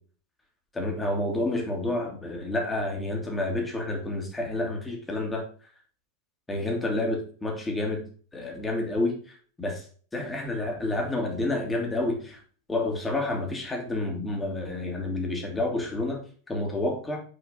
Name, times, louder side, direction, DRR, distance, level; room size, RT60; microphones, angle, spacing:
voice 1, 0.7-5.4 6.5-8.0 8.3-9.8 10.1-12.4 12.7-16.2 16.5-17.2, left 2 dB, 10° left, 1 dB, 1.9 m, -29 dB
6.3 x 4.3 x 3.9 m, 0.43 s
figure-of-eight pair, 90°, 0 cm